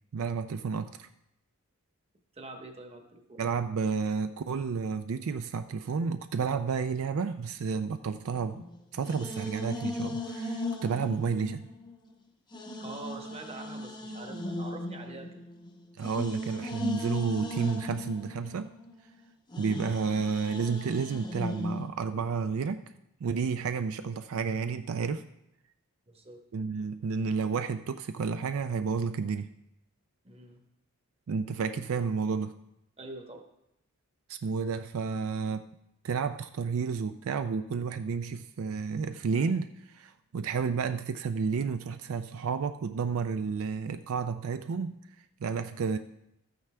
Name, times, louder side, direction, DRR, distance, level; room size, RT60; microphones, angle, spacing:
voice 1, 0.1-1.1 3.4-8.6 8.9-11.7 16.0-18.7 19.6-22.8 23.2-25.2 26.5-29.5 31.3-32.5 34.3-35.6 36.0-45.0 45.4-46.0, right 5 dB, 70° right, 10 dB, 0.4 m, -31 dB
voice 2, 2.4-3.4 12.8-15.4 26.1-26.4 30.2-30.6 33.0-33.4, right 2 dB, 25° right, 4 dB, 1.1 m, -44 dB
sound 1, 8.3-12.1 12.5-21.9, left 1 dB, 20° left, 0.9 m, -37 dB
13.5 x 9.1 x 3.3 m, 0.84 s
head